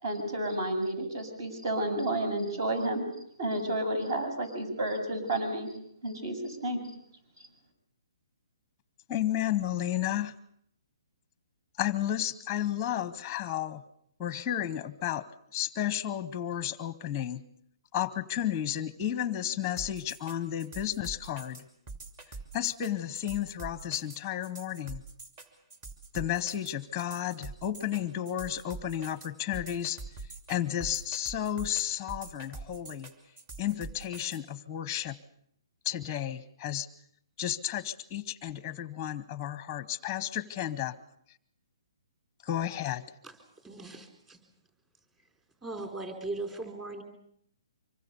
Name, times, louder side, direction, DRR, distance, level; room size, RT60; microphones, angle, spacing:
voice 1, 0.0-3.0 3.4-5.7 6.0-6.8, right 1 dB, 55° right, 8 dB, 7.6 m, -31 dB
voice 2, 9.1-10.3 11.8-13.8 14.2-15.3 15.5-17.4 17.9-21.6 22.5-25.0 26.1-33.1 33.6-35.2 35.8-36.9 37.4-41.0 42.4-43.0, left 11 dB, 15° left, 16 dB, 0.9 m, -32 dB
sound 1, 19.8-34.4, right 3 dB, 30° right, 2.7 m, -44 dB
voice 3, 43.6-44.4 45.6-47.0, right 2 dB, 15° right, 4 dB, 4.1 m, -38 dB
25.0 x 23.0 x 6.9 m, 0.69 s
hypercardioid pair, 160°, 3 cm